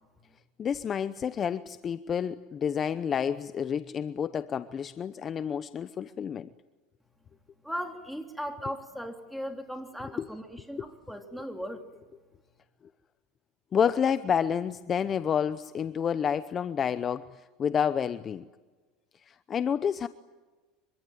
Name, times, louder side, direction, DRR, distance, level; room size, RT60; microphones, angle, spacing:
voice 1, 0.6-6.5 10.2-10.3 10.8-10.9 13.7-18.4 19.2-20.1, left 8 dB, 30° left, 13 dB, 0.8 m, -29 dB
voice 2, 7.6-11.8, equal, ahead, 4 dB, 3.2 m, -37 dB
25.0 x 24.0 x 9.3 m, 1.3 s
supercardioid pair, 115°, 0 cm